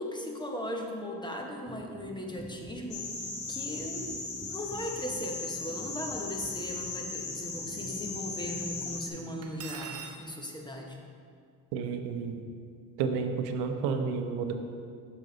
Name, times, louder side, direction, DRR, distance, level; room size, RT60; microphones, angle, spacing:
voice 1, 0.0-3.1 3.5-4.1 4.4-11.0, left 1 dB, 10° left, 1 dB, 1.0 m, -38 dB
sound 1, 1.7-9.6, right 2 dB, 10° right, 0.4 m, -47 dB
sound 2, 2.9-9.1, left 4 dB, 50° left, 1.5 m, -38 dB
Cutlery silverware, 9.4-10.2, right 6 dB, 40° right, 0.8 m, -41 dB
voice 2, 11.7-12.4 13.0-14.5, right 5 dB, 90° right, 6 dB, 0.7 m, -31 dB
6.7 x 6.3 x 3.9 m, 2.2 s
supercardioid pair, 90°, 38 cm